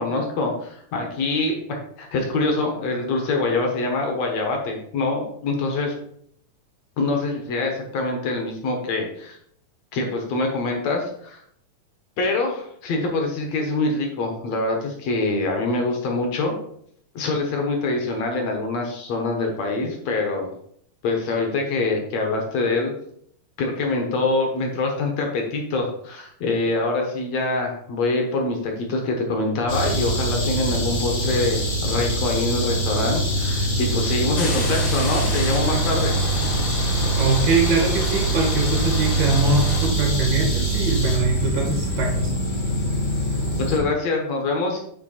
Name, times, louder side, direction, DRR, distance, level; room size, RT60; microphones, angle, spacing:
voice 1, 0.0-6.0 7.0-9.4 9.9-11.4 12.2-16.5 17.2-20.5 21.0-22.9 23.6-36.2 43.6-44.8, left 3 dB, 60° left, 2 dB, 1.9 m, -25 dB
sound 1, 29.7-43.8, right 1 dB, 45° left, 1.0 m, -23 dB
sound 2, 34.3-39.9, left 2 dB, 80° left, 4.1 m, -32 dB
voice 2, 37.1-42.3, right 3 dB, 80° right, 1 dB, 3.7 m, -23 dB
9.0 x 3.3 x 4.8 m, 0.68 s
omnidirectional pair, 4.2 m